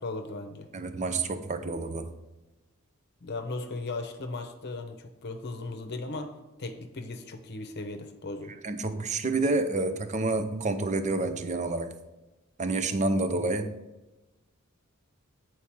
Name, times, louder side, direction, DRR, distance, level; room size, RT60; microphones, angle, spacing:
voice 1, 0.0-0.7 3.2-8.6, left 2 dB, 50° left, 6 dB, 0.8 m, -37 dB
voice 2, 0.7-2.1 8.6-11.9 12.6-13.7, right 2 dB, 35° right, 9 dB, 0.6 m, -28 dB
8.6 x 4.6 x 4.6 m, 1.1 s
head